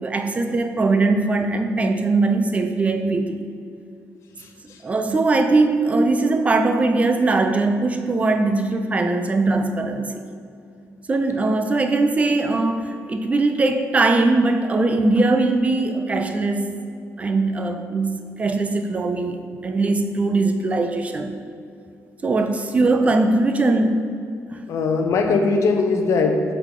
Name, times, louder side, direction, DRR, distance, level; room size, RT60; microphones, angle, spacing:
voice 1, 0.0-3.4 4.8-10.3 11.1-16.8 17.2-19.4 19.6-21.4 22.2-24.0 24.5-24.6, right 3 dB, 25° right, 7 dB, 0.3 m, -20 dB
voice 2, 4.4-4.8 24.7-26.4, left 4 dB, 65° left, 4 dB, 0.7 m, -21 dB
7.9 x 3.9 x 3.7 m, 2.4 s
cardioid pair, 145°, 6 cm